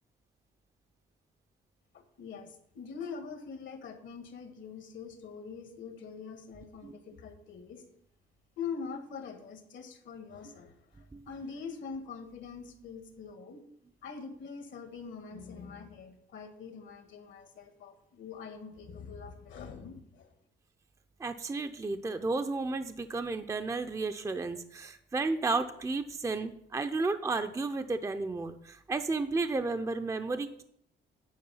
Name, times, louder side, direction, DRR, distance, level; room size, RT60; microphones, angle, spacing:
voice 1, 1.9-7.8 8.6-13.6 14.0-20.3, left 5 dB, 70° left, 7 dB, 1.4 m, -44 dB
voice 2, 21.2-30.6, right 3 dB, 15° right, 8 dB, 0.5 m, -33 dB
9.6 x 4.9 x 5.5 m, 0.73 s
cardioid pair, 90°, 20 cm